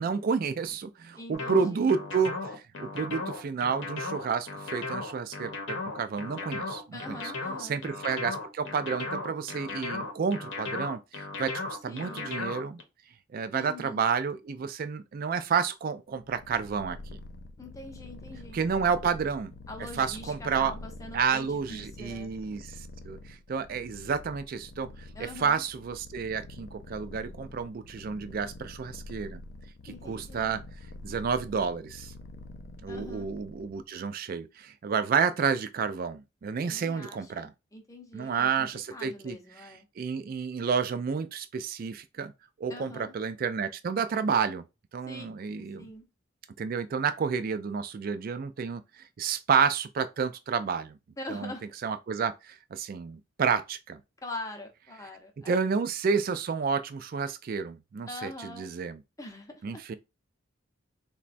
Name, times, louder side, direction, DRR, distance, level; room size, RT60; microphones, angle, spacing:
voice 1, 0.0-2.3 2.8-7.2 7.6-12.8 13.3-17.2 18.5-19.5 20.0-20.7 21.1-22.8 23.0-29.4 29.8-30.6 31.0-32.1 32.8-37.5 38.1-39.4 39.6-42.3 42.6-44.6 44.9-45.9 46.6-48.8 49.2-51.0 51.3-51.5 51.8-54.0 55.5-59.0 59.6-59.9, right 6 dB, 50° right, 0.3 m, -30 dB
voice 2, 1.2-2.0 6.9-7.8 11.9-12.3 13.5-14.0 17.6-18.9 19.7-22.3 25.1-25.6 29.9-30.5 32.9-33.3 36.7-39.8 42.7-43.1 45.1-45.3 45.6-46.1 51.2-51.7 54.2-55.7 58.1-58.7 59.2-60.0, left 1 dB, 15° left, 0.6 m, -43 dB
sound 1, 1.3-12.8, left 3 dB, 70° left, 0.8 m, -36 dB
Purr, 16.2-33.8, left 2 dB, 55° left, 0.4 m, -46 dB
3.9 x 2.2 x 2.5 m
head